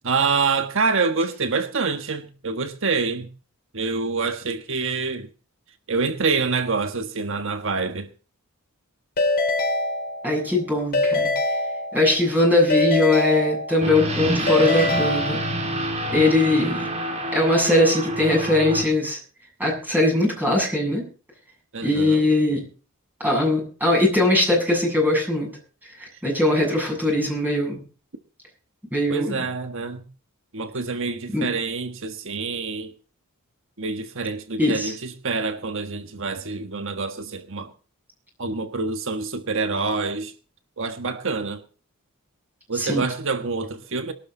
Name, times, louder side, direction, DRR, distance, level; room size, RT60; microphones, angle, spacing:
voice 1, 0.0-3.3 3.7-5.3 5.9-8.1 21.7-22.3 29.1-30.0 30.5-32.9 33.8-37.7 38.4-40.3 40.8-41.6 42.7-44.1, right 4 dB, 60° right, 1.4 m, -26 dB
Keyboard (musical) / Ringtone, 9.2-10.5 10.9-12.3 12.7-14.0 14.5-15.8, left 2 dB, 45° left, 4.8 m, -24 dB
voice 2, 10.2-11.3 11.9-15.4 16.1-16.9 17.3-19.2 19.6-21.0 21.8-22.6 23.2-25.5 26.0-27.8 28.9-29.4 31.3-31.5 34.6-34.9 42.7-43.0, left 1 dB, 10° right, 7.8 m, -21 dB
sound 1, 13.8-18.8, right 1 dB, 30° right, 4.7 m, -27 dB
23.0 x 12.0 x 3.9 m
head